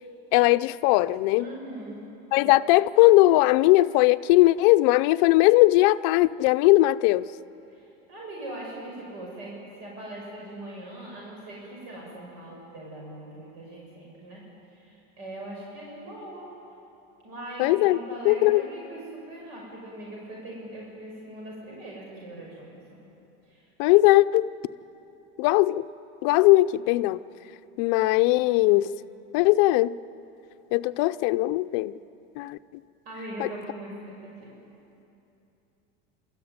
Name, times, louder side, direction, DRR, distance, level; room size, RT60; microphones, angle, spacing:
voice 1, 0.3-1.5 2.3-7.3 17.6-18.0 18.2-18.6 23.8-24.5 25.4-25.9 26.2-27.2 27.8-28.9 29.3-30.0 30.7-31.9 32.4-32.6 33.4-33.5, left 18 dB, 50° left, 11 dB, 0.5 m, -19 dB
voice 2, 1.4-2.1 7.7-14.4 14.7-16.5 17.2-23.1 23.5-23.7 33.0-34.6, right 1 dB, 75° right, -3 dB, 6.4 m, -41 dB
29.5 x 14.0 x 9.5 m, 2.9 s
cardioid pair, 175°, 30 cm